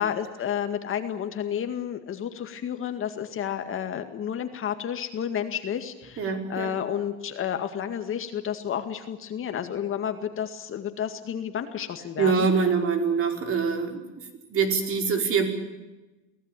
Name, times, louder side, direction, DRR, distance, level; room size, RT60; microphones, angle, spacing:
voice 1, 0.0-12.5, left 9 dB, 35° left, 7 dB, 2.1 m, -31 dB
voice 2, 6.2-6.7 12.2-14.0 14.5-15.5, right 5 dB, 35° right, 4 dB, 4.9 m, -24 dB
24.0 x 17.5 x 9.1 m, 1.1 s
cardioid pair, 140°, 36 cm